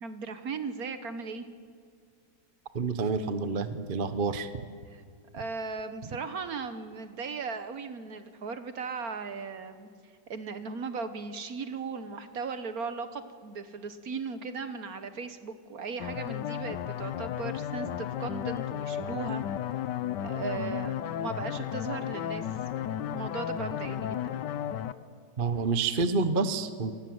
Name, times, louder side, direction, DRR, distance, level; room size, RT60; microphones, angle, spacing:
voice 1, 0.0-1.5 4.9-5.0 5.3-9.9 10.3-19.4 20.2-22.6 23.0-24.4, right 4 dB, 55° right, 10 dB, 1.4 m, -37 dB
voice 2, 2.7-4.5 25.4-26.9, right 4 dB, 35° right, 11 dB, 0.9 m, -28 dB
sound 1, 16.0-24.9, left 10 dB, 65° left, 1.3 m, -34 dB
26.5 x 19.0 x 7.9 m, 2.2 s
omnidirectional pair, 2.1 m